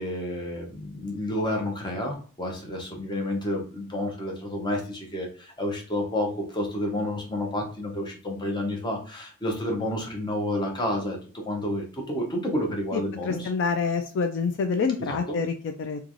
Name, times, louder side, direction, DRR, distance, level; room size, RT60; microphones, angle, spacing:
voice 1, 0.0-13.5 15.0-15.4, left 1 dB, 20° left, 1 dB, 0.7 m, -30 dB
voice 2, 12.9-16.0, left 5 dB, 55° left, 6 dB, 0.3 m, -27 dB
3.0 x 2.3 x 2.5 m, 0.41 s
head